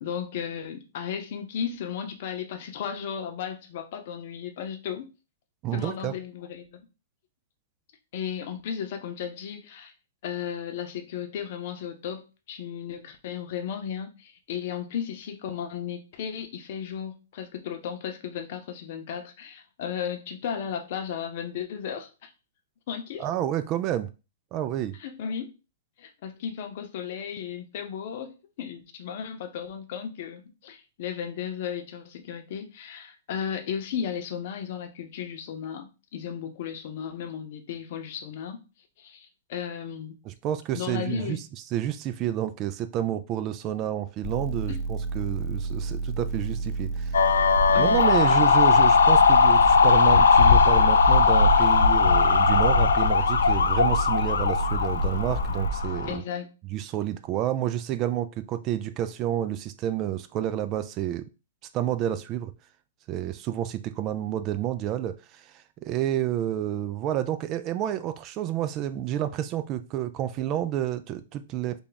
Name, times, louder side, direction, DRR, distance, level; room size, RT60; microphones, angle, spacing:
voice 1, 0.0-5.1 5.7-6.9 8.1-9.9 10.2-22.3 22.9-23.3 25.0-25.5 26.0-38.6 39.0-40.2 40.7-41.4 44.7-44.8 47.7-48.2 49.5-49.6 56.0-56.5, left 8 dB, 55° left, 0.7 m, -35 dB
voice 2, 5.6-6.1 23.2-24.1 24.5-25.0 40.2-41.4 41.7-47.2 47.7-56.2 56.7-61.3 61.7-62.5 63.1-71.8, right 11 dB, 35° right, 0.3 m, -29 dB
sound 1, 44.2-55.7, right 3 dB, 10° left, 0.7 m, -31 dB
sound 2, 47.1-56.2, left 5 dB, 85° left, 0.4 m, -19 dB
3.3 x 2.3 x 3.9 m
hypercardioid pair, 130°, 0 cm